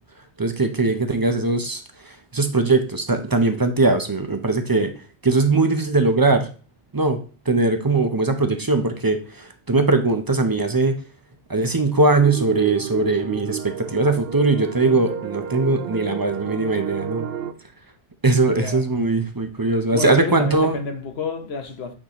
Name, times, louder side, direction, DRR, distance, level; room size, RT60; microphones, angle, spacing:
voice 1, 0.4-4.9 5.2-6.5 6.9-7.2 7.5-11.0 11.5-17.3 18.2-20.8, right 3 dB, 25° right, 0.5 m, -20 dB
sound 1, 12.2-17.5, right 9 dB, 65° right, 0.7 m, -31 dB
voice 2, 18.5-18.9 19.9-21.9, left 4 dB, 65° left, 1.2 m, -29 dB
8.7 x 4.0 x 2.9 m
omnidirectional pair, 1.1 m